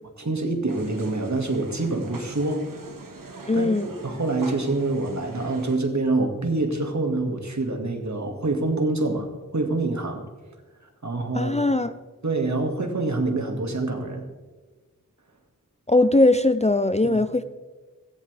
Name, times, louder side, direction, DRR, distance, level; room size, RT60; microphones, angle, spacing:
voice 1, 0.2-2.6 3.5-10.2 11.0-11.5 12.2-14.3 17.0-17.2, right 2 dB, 55° right, 4 dB, 2.0 m, -26 dB
sound 1, 0.7-5.8, right 3 dB, 75° right, 1.6 m, -42 dB
voice 2, 3.5-3.9 11.3-11.9 15.9-17.4, left 2 dB, 20° left, 12 dB, 0.5 m, -20 dB
16.5 x 15.0 x 3.4 m, 1.3 s
wide cardioid pair, 65°, 34 cm